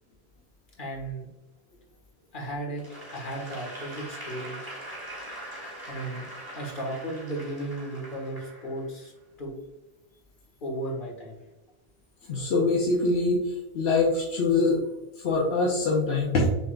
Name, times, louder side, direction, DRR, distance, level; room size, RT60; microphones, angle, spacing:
voice 1, 0.8-1.3 2.3-2.8 3.1-4.6 5.9-6.2 6.5-9.1 9.4-9.5 10.6-11.4, right 1 dB, 50° left, -2 dB, 1.6 m, -35 dB
Applause / Crowd, 2.8-9.0, right 1 dB, 20° right, 1.6 m, -42 dB
voice 2, 12.3-14.8 15.2-16.5, left 3 dB, 80° left, -2 dB, 1.0 m, -24 dB
6.4 x 3.6 x 2.3 m, 1.0 s
omnidirectional pair, 1.1 m